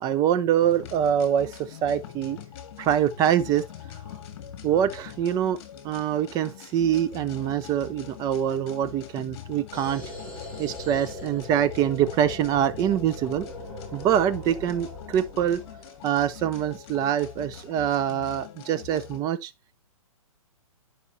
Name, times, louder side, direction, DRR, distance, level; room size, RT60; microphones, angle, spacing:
voice 1, 0.0-2.4 2.8-3.6 4.6-5.6 5.8-10.0 10.6-13.5 13.9-15.6 16.0-19.5, right 10 dB, 20° right, 0.6 m, -24 dB
sound 1, 0.6-19.2, left 9 dB, 45° left, 1.8 m, -43 dB
sound 2, 9.7-16.3, equal, 5° left, 5.8 m, -42 dB
9.6 x 5.6 x 2.6 m
hypercardioid pair, 140°, 18 cm